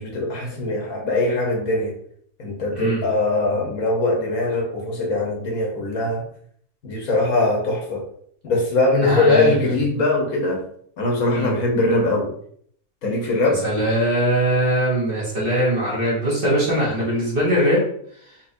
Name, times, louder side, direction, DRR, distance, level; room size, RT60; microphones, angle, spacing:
voice 1, 0.0-1.9 2.4-6.2 6.8-8.0 8.4-10.6 11.0-12.3 13.0-13.6, left 2 dB, 65° left, -1 dB, 1.4 m, -21 dB
voice 2, 9.0-9.7 11.3-11.5 13.6-17.9, right 1 dB, 40° right, -5 dB, 1.3 m, -21 dB
4.2 x 2.8 x 2.6 m, 0.64 s
omnidirectional pair, 1.7 m